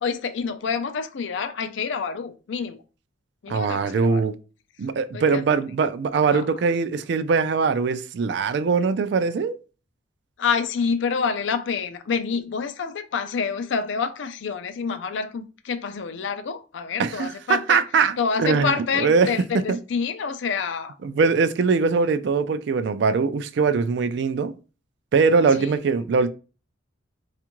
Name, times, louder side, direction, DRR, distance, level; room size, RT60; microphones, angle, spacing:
voice 1, 0.0-2.8 3.4-4.3 5.1-5.4 6.3-6.5 10.4-17.8 18.2-20.9 25.6-25.8, left 5 dB, 70° left, 0.4 m, -27 dB
voice 2, 3.5-4.3 4.8-9.6 17.0-19.3 19.7-19.8 21.0-24.5 25.1-26.3, right 5 dB, 60° right, 0.3 m, -22 dB
4.3 x 2.4 x 2.9 m
head